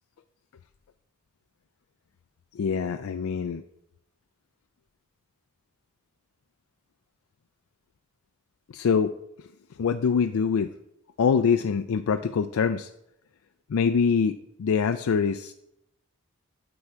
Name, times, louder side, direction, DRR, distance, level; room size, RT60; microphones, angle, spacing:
voice 1, 2.5-3.6 8.7-9.5 9.8-10.7 11.2-12.9 13.7-15.5, left 6 dB, 65° left, 9 dB, 0.4 m, -24 dB
9.8 x 7.1 x 4.4 m, 0.82 s
head